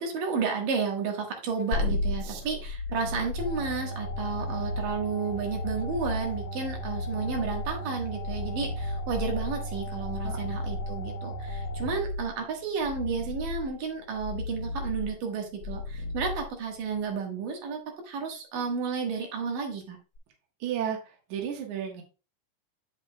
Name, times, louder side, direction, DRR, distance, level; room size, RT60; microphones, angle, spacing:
voice 1, 0.0-20.0, right 5 dB, 85° right, 2 dB, 3.1 m, -32 dB
sound 1, 1.7-17.0 20.2-20.3, left 2 dB, 45° left, 2.1 m, -35 dB
sound 2, 3.4-11.9, right 2 dB, 80° left, 2.0 m, -37 dB
voice 2, 20.6-21.0 21.3-22.0, right 9 dB, 70° right, 2 dB, 2.6 m, -32 dB
8.1 x 7.8 x 2.2 m, 0.32 s
omnidirectional pair, 3.7 m